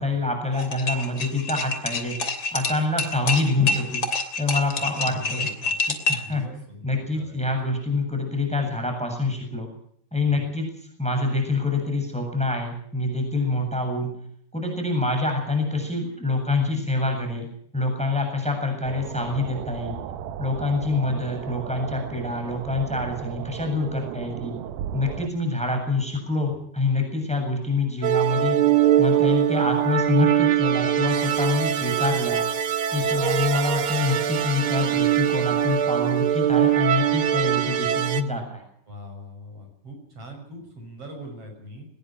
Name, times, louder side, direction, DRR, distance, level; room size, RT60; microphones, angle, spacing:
voice 1, 0.0-2.2 2.5-4.0 4.4-5.5 6.1-6.4 6.8-9.7 10.1-10.7 11.0-14.1 14.5-17.5 17.7-20.0 20.4-24.6 24.9-28.6 29.0-32.4 32.9-38.6, left 2 dB, ahead, 4 dB, 7.4 m, -26 dB
sound 1, 0.5-6.3, left 3 dB, 35° left, 3.5 m, -27 dB
voice 2, 4.8-5.8 6.2-7.6 10.2-10.5 26.5-26.6 38.9-41.9, equal, 40° right, 3 dB, 7.4 m, -42 dB
sound 2, 18.8-25.3, right 10 dB, 85° right, 2.9 m, -35 dB
sound 3, 28.0-38.2, right 11 dB, 70° right, 1.2 m, -22 dB
22.5 x 21.0 x 6.1 m, 0.66 s
omnidirectional pair, 4.1 m